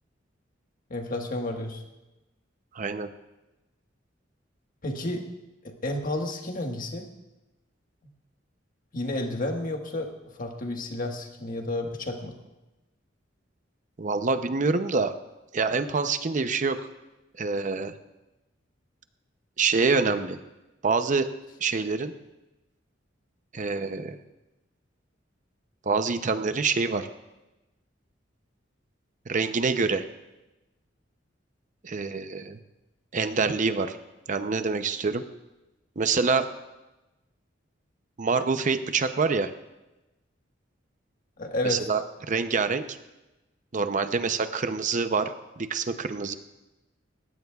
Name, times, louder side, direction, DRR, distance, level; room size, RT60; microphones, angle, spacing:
voice 1, 0.9-1.8 4.8-5.3 5.6-7.1 8.9-12.3 41.4-41.9, left 1 dB, 50° left, 3 dB, 1.5 m, -31 dB
voice 2, 2.7-3.1 14.0-15.1 15.5-16.8 17.4-17.9 19.6-20.4 20.8-21.3 21.6-22.1 23.5-24.2 25.9-27.1 29.3-30.0 31.8-32.6 33.1-34.0 34.3-35.2 36.0-36.5 38.2-39.5 41.6-43.0 43.7-46.4, right 4 dB, 40° right, 10 dB, 0.6 m, -26 dB
19.0 x 16.0 x 2.4 m, 1.0 s
head